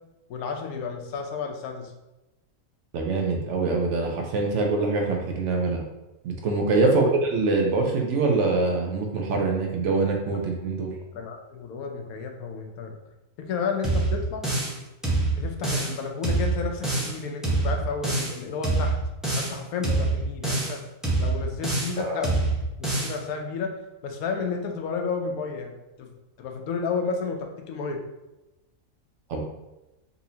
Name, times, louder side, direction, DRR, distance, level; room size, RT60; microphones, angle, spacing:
voice 1, 0.3-1.9 6.8-7.1 11.1-12.9 13.4-14.5 15.4-18.9 19.4-20.8 21.2-22.5 22.8-23.7 24.0-25.7 26.0-26.1 26.4-28.0, left 5 dB, 85° left, 3 dB, 1.1 m, -32 dB
voice 2, 2.9-5.8 6.2-7.0 7.3-10.9 22.0-22.2 29.3-29.4, right 3 dB, 65° right, 1 dB, 0.8 m, -24 dB
sound 1, 13.8-14.8 15.0-16.0 16.2-17.2 17.4-18.4 18.6-19.6 19.8-20.8 21.0-22.0 22.2-23.2, right 2 dB, ahead, 0.5 m, -25 dB
4.1 x 2.7 x 2.7 m, 0.99 s
omnidirectional pair, 1.5 m